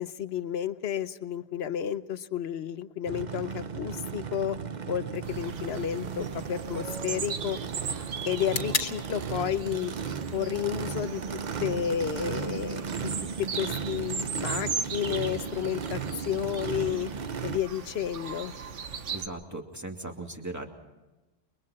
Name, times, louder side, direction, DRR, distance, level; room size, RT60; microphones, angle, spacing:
voice 1, 0.0-4.6 4.9-7.6 8.2-9.9 10.3-13.1 13.4-17.1 17.4-18.5, left 9 dB, 60° left, 12 dB, 1.1 m, -31 dB
Race car auto racing / Idling / Accelerating revving vroom, 3.1-17.6, right 6 dB, 45° right, 0.8 m, -36 dB
sound 1, 4.4-12.4, left 4 dB, 80° left, 2.2 m, -41 dB
sound 2, 5.2-19.3, right 5 dB, 85° right, 1.5 m, -38 dB
voice 2, 19.1-20.7, right 2 dB, 15° right, 2 dB, 2.5 m, -38 dB
29.0 x 23.5 x 4.3 m, 1.1 s
omnidirectional pair, 1.2 m